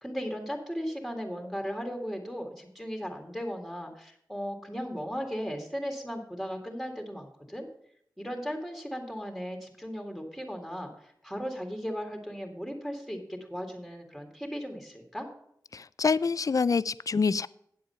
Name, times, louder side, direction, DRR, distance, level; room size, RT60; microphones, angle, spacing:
voice 1, 0.0-7.7 8.2-15.3, equal, ahead, 3 dB, 2.0 m, -36 dB
voice 2, 15.7-17.5, left 5 dB, 50° left, 19 dB, 0.3 m, -26 dB
9.0 x 7.6 x 5.6 m, 0.71 s
wide cardioid pair, 60°, 7 cm